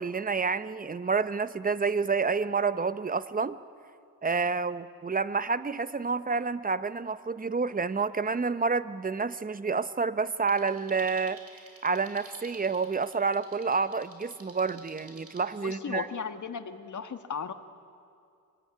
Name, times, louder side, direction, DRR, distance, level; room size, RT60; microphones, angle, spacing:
voice 1, 0.0-3.6 4.2-11.4 11.8-16.1, right 4 dB, 25° right, 14 dB, 0.8 m, -29 dB
sound 1, 10.5-15.4, right 2 dB, 40° right, 5.9 m, -53 dB
voice 2, 15.6-17.5, left 6 dB, 50° left, 8 dB, 1.7 m, -36 dB
25.5 x 20.0 x 9.7 m, 2.5 s
cardioid pair, 80°, 37 cm